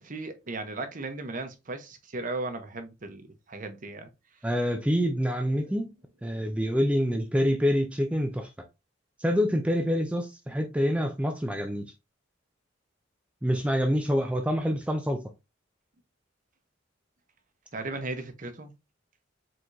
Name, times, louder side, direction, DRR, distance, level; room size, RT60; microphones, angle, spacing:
voice 1, 0.0-4.1 5.6-5.8 17.7-18.7, right 2 dB, 40° right, 0.8 m, -36 dB
voice 2, 4.4-5.9 6.2-8.5 9.2-11.9 13.4-15.2, equal, 5° right, 0.4 m, -26 dB
4.7 x 3.8 x 2.6 m
head